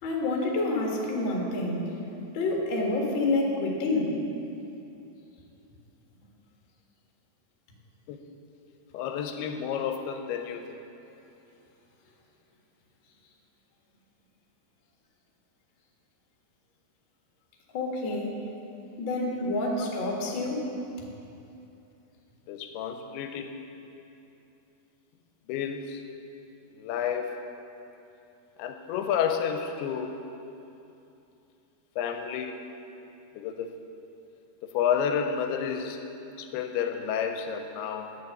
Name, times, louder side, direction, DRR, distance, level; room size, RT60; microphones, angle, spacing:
voice 1, 0.0-1.9 2.3-4.2 17.7-18.3 19.0-20.7, left 2 dB, 55° left, -1 dB, 1.4 m, -28 dB
voice 2, 8.9-10.8 19.4-19.5 22.5-23.5 25.5-26.0 26.8-27.4 28.6-30.2 32.0-32.6 33.4-33.7 34.6-36.0 36.4-38.2, left 8 dB, 85° left, 6 dB, 2.5 m, -30 dB
11.0 x 6.8 x 7.8 m, 2.8 s
omnidirectional pair, 4.7 m